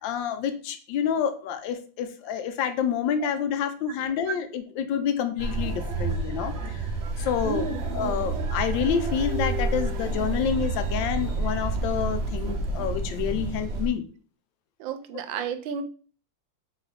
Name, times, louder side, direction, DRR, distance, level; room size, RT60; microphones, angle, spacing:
voice 1, 0.0-6.9 7.2-7.6 7.9-14.0, left 8 dB, 85° left, 9 dB, 1.3 m, -28 dB
sound 1, 5.4-13.9, right 3 dB, 60° right, 0.7 m, -29 dB
voice 2, 7.4-7.8 14.8-15.8, right 6 dB, 90° right, 9 dB, 1.4 m, -32 dB
3.9 x 3.6 x 3.2 m, 0.40 s
omnidirectional pair, 2.0 m